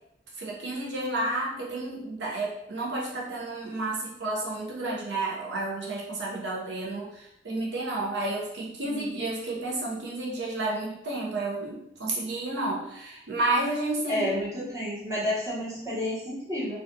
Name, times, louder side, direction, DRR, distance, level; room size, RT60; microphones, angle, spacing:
voice 1, 0.4-14.3, right 2 dB, 75° right, -3 dB, 0.5 m, -31 dB
voice 2, 14.1-16.8, left 1 dB, 15° right, -8 dB, 0.8 m, -30 dB
2.3 x 2.2 x 2.5 m, 0.79 s
head